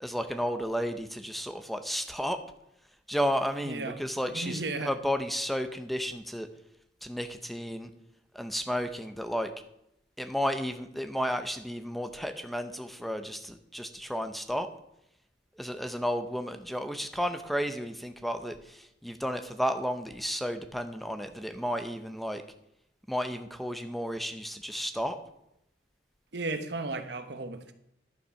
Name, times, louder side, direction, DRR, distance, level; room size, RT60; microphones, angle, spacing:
voice 1, 0.0-2.4 3.1-6.5 7.0-7.9 8.3-9.5 10.2-14.7 15.6-22.4 23.1-25.2, equal, ahead, 7 dB, 0.6 m, -32 dB
voice 2, 3.6-4.9 26.3-27.7, right 3 dB, 65° right, 9 dB, 1.0 m, -35 dB
11.5 x 7.1 x 5.8 m, 0.78 s
head